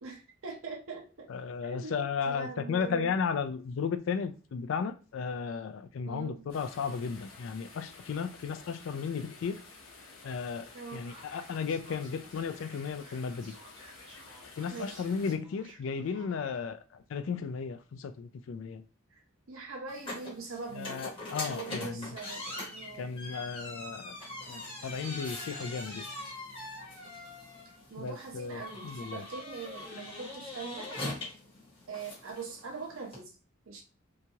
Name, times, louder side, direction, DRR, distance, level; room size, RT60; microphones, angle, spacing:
voice 1, 0.0-1.3 1.6-3.1 6.0-6.4 10.7-11.0 14.7-15.0 19.1-19.2 19.5-23.2 27.9-30.9 31.9-33.4 33.7-33.8, right 4 dB, 85° right, 0.8 m, -42 dB
voice 2, 1.3-9.6 10.2-13.5 14.6-18.8 20.7-22.2 23.0-24.1 24.5-26.3 28.0-29.2, left 6 dB, 70° left, 0.3 m, -35 dB
sound 1, 6.5-15.4, left 3 dB, 85° left, 0.8 m, -52 dB
Male speech man speaking, 10.7-16.6, right 2 dB, 25° right, 0.8 m, -56 dB
sound 2, 19.9-33.2, left 1 dB, 25° left, 1.0 m, -42 dB
2.8 x 2.3 x 2.8 m
head